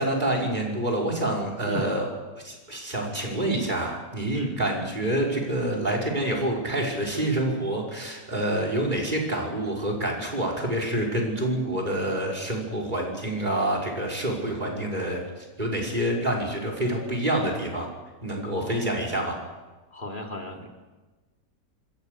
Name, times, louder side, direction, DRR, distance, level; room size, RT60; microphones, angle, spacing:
voice 1, 0.0-2.1 2.4-17.9 18.2-19.4, right 1 dB, 25° right, 0 dB, 5.4 m, -27 dB
voice 2, 1.6-2.0 4.3-4.6 18.6-18.8 19.9-20.7, equal, 25° left, 2 dB, 3.0 m, -34 dB
27.0 x 20.5 x 6.7 m, 1.2 s
omnidirectional pair, 1.9 m